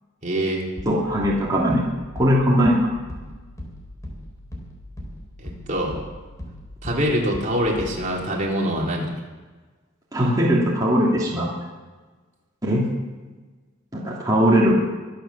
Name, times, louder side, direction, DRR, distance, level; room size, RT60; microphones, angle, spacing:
voice 1, 0.2-0.7 5.4-6.0 6.8-9.1, equal, 40° right, -2 dB, 3.6 m, -24 dB
sound 1, 0.8-8.3, left 1 dB, 15° left, 4.3 m, -39 dB
voice 2, 0.9-1.8 2.1-2.9 10.1-11.5 12.6-12.9 13.9-14.7, equal, 20° right, -6 dB, 2.8 m, -19 dB
23.5 x 8.5 x 7.2 m, 1.3 s
head